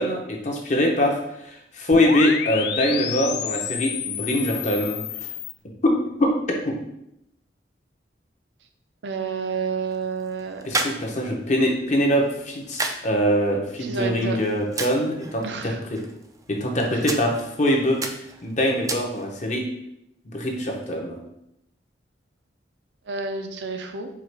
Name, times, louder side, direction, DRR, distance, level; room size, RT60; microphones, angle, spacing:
voice 1, 0.0-5.0 5.8-5.9 6.2-6.3 6.6-6.8 10.7-15.7 16.5-18.0 18.4-19.6 20.3-21.2, left 1 dB, 40° left, 1 dB, 0.9 m, -23 dB
sound 1, 1.9-5.5, left 9 dB, 65° left, 0.3 m, -30 dB
voice 2, 9.0-10.6 13.8-14.4 15.4-15.8 16.9-17.1 23.1-24.1, right 5 dB, 75° right, 6 dB, 0.5 m, -29 dB
sound 2, 9.5-19.5, right 3 dB, 20° right, 0.3 m, -35 dB
4.7 x 2.4 x 4.5 m, 0.80 s
head